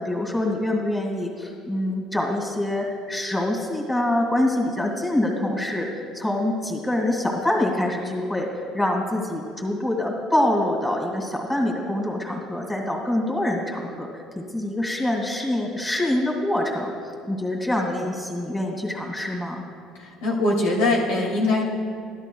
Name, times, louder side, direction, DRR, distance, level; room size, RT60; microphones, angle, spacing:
voice 1, 0.0-8.5 8.7-14.2 14.5-16.9 17.3-19.6, left 1 dB, 10° left, 0 dB, 2.2 m, -25 dB
voice 2, 20.0-21.6, left 2 dB, 90° left, -3 dB, 2.3 m, -22 dB
13.0 x 12.0 x 2.3 m, 2.2 s
cardioid pair, 120°, 0 cm